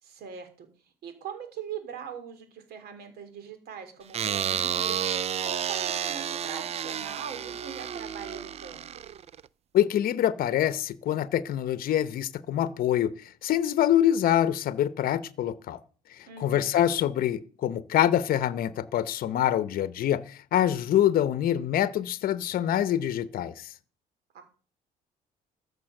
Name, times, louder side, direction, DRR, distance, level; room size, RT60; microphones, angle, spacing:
voice 1, 0.0-0.7 1.0-8.8 16.3-16.8 24.3-24.4, right 7 dB, 70° right, 3.4 m, -41 dB
sound 1, 4.1-9.4, right 9 dB, 40° right, 0.5 m, -31 dB
voice 2, 9.7-15.8 16.4-23.7, left 11 dB, 60° left, 0.8 m, -25 dB
13.5 x 6.7 x 6.5 m
cardioid pair, 110°, 17 cm